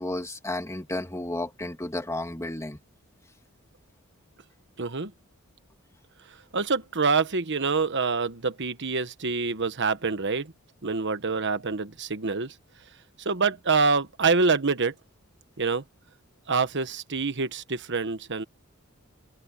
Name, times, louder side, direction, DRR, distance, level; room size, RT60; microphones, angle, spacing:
voice 1, 0.0-2.8, left 1 dB, 15° left, 2.4 m, -32 dB
voice 2, 4.8-5.1 6.5-10.5 10.8-12.5 13.2-14.9 15.6-15.8 16.5-18.4, right 4 dB, 55° right, 1.3 m, -26 dB
open air
head